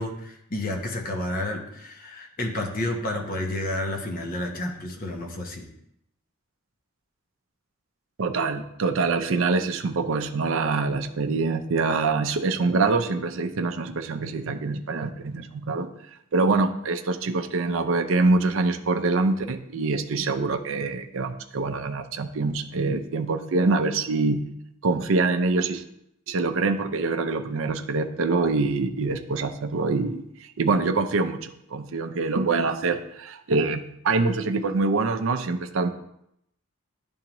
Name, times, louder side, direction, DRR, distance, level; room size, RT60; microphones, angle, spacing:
voice 1, 0.0-5.7, left 1 dB, 40° left, 2 dB, 0.8 m, -30 dB
voice 2, 8.2-15.9 16.3-24.4 24.8-25.8 26.3-30.2 30.6-35.9, right 3 dB, 65° right, 7 dB, 0.5 m, -25 dB
10.0 x 3.5 x 3.0 m, 0.77 s
head